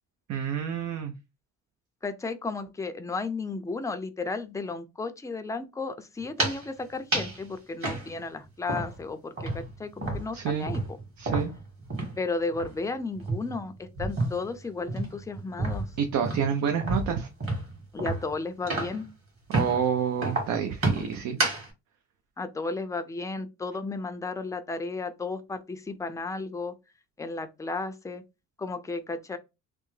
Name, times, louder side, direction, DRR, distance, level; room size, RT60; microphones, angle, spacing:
voice 1, 0.3-1.1 10.3-10.7 11.2-11.5 16.0-17.3 19.5-21.4, right 7 dB, 70° right, 0.6 m, -28 dB
voice 2, 2.0-10.8 12.2-15.9 17.9-19.1 22.4-26.8 27.2-28.2 28.6-29.4, left 3 dB, 10° left, 0.4 m, -34 dB
sound 1, 6.2-6.7 7.1-7.4 7.8-9.1 9.4-12.2 12.5-12.7 13.1-14.5 14.9-19.1 19.5-19.8 20.2-21.7, right 2 dB, 45° right, 2.0 m, -30 dB
3.3 x 2.0 x 3.1 m
cardioid pair, 90°, 30 cm